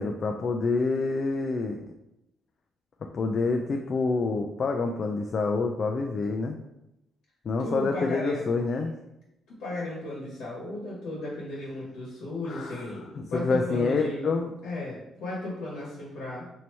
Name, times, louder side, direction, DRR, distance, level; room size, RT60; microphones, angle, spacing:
voice 1, 0.0-1.8 3.1-6.6 7.5-8.9 12.5-12.8 13.2-14.5, left 3 dB, 50° left, 2 dB, 0.3 m, -27 dB
voice 2, 7.6-8.4 9.5-14.3 14.6-16.5, left 2 dB, 80° left, -5 dB, 1.1 m, -35 dB
3.0 x 2.7 x 4.3 m, 0.86 s
cardioid pair, 90°, 0 cm